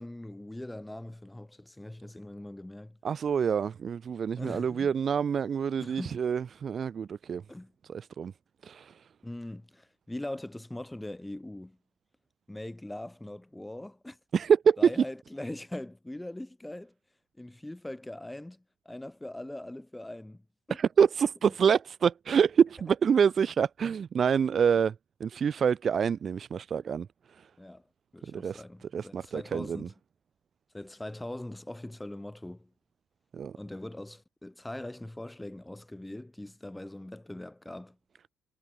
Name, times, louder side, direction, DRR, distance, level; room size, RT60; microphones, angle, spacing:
voice 1, 0.0-3.0 4.4-4.9 5.8-6.2 7.5-7.7 9.2-11.8 12.5-14.2 14.8-16.9 17.4-20.8 27.6-27.8 28.1-29.9 30.7-32.7 33.6-38.0, left 1 dB, 10° left, 5.8 m, -41 dB
voice 2, 3.0-7.4 7.9-8.3 8.6-9.0 14.3-14.9 20.7-24.9 25.2-27.5 28.2-28.6 28.9-29.9 33.3-33.6, right 7 dB, 45° right, 0.5 m, -26 dB
supercardioid pair, 75°, 0 cm